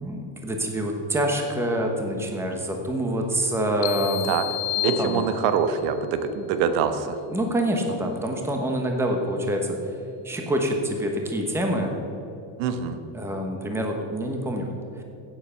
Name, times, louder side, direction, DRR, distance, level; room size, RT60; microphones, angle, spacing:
voice 1, 0.0-4.3 4.8-5.3 7.3-9.8 10.2-11.9 13.1-15.0, right 1 dB, 5° right, 2 dB, 1.0 m, -26 dB
sound 1, 3.8-5.8, left 18 dB, 90° left, 0.6 m, -30 dB
voice 2, 4.8-7.2 12.6-13.0, right 7 dB, 75° right, 9 dB, 1.2 m, -24 dB
16.5 x 7.5 x 5.6 m, 2.9 s
cardioid pair, 180°, 46 cm